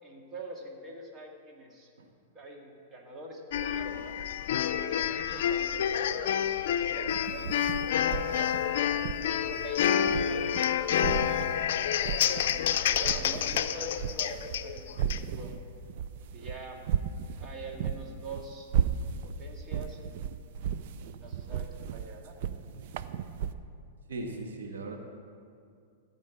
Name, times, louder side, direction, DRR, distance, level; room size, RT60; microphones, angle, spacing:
voice 1, 0.0-1.9 2.3-4.1 4.9-8.9 9.4-11.2 11.5-11.9 12.8-14.9 15.2-15.5 16.3-16.8 17.4-18.7 19.2-20.2 21.1-22.4, right 2 dB, 25° right, 0 dB, 2.0 m, -44 dB
sound 1, 3.5-15.2, left 9 dB, 70° left, 0.5 m, -29 dB
sound 2, 7.1-10.7 11.0-12.6 12.9-23.5, right 8 dB, 60° right, 0.5 m, -35 dB
voice 2, 24.1-25.0, right 2 dB, 90° right, 2 dB, 1.4 m, -37 dB
14.0 x 5.4 x 8.2 m, 2.3 s
hypercardioid pair, 130°, 0 cm